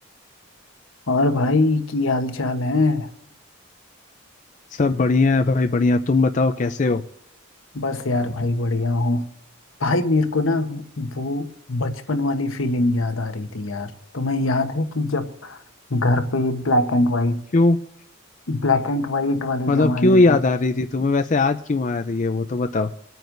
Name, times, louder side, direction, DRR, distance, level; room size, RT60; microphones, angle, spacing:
voice 1, 1.1-3.1 7.7-9.2 9.8-15.6 15.9-17.4 18.5-20.4, left 2 dB, 75° left, 8 dB, 1.1 m, -22 dB
voice 2, 4.7-7.0 17.5-17.8 19.7-22.9, left 3 dB, 35° left, 7 dB, 0.5 m, -19 dB
27.0 x 9.2 x 2.6 m, 0.74 s
head